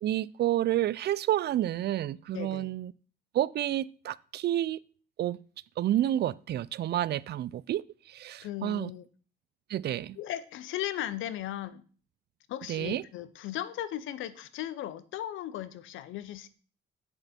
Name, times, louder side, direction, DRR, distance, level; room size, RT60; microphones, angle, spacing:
voice 1, 0.0-2.9 3.3-4.8 5.2-5.4 5.8-8.9 9.7-10.2 12.7-13.0, right 12 dB, 55° right, 0.4 m, -29 dB
voice 2, 2.3-2.7 8.4-9.1 10.2-11.8 12.5-16.5, left 12 dB, 85° left, 0.7 m, -37 dB
8.3 x 6.6 x 4.3 m
cardioid pair, 90°, 20 cm